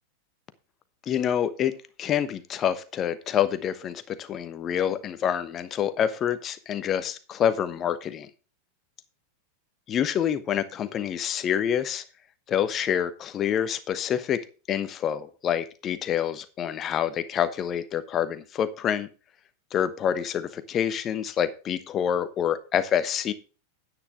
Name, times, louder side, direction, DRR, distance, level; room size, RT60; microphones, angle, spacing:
voice 1, 1.1-1.7 2.0-8.3 9.9-12.0 12.5-14.4 14.7-19.1 19.7-23.3, left 9 dB, 30° left, 12 dB, 1.1 m, -27 dB
9.9 x 9.1 x 3.6 m, 0.34 s
figure-of-eight pair, 90°, 0 cm